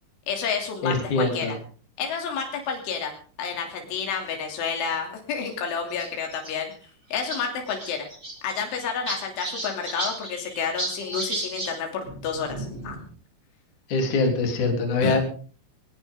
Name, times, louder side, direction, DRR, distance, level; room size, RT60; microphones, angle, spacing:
voice 1, 0.3-1.6 2.0-6.7 7.1-8.1 8.4-13.0 15.0-15.2, left 6 dB, 85° left, 2 dB, 5.4 m, -30 dB
voice 2, 0.8-1.5 13.9-15.2, left 3 dB, 45° left, 3 dB, 4.5 m, -23 dB
sound 1, 2.7-3.0 3.9-4.0 4.2-4.3 5.4-5.5 5.9-6.5 6.8-6.9 7.1-7.4 7.7-11.7 12.0-13.1, right 1 dB, 10° right, 3.3 m, -34 dB
20.0 x 19.5 x 3.8 m, 0.41 s
omnidirectional pair, 5.4 m